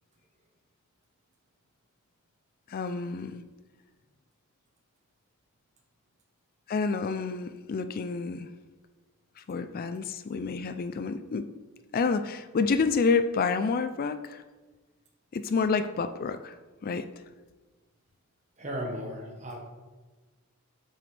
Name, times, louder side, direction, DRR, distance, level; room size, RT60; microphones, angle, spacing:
voice 1, 2.7-3.4 6.7-8.5 9.4-11.5 11.9-14.4 15.3-16.6 16.8-17.1, left 4 dB, 40° left, 10 dB, 0.3 m, -29 dB
voice 2, 18.6-19.6, equal, 35° right, 1 dB, 1.4 m, -35 dB
7.9 x 7.6 x 3.3 m, 1.2 s
head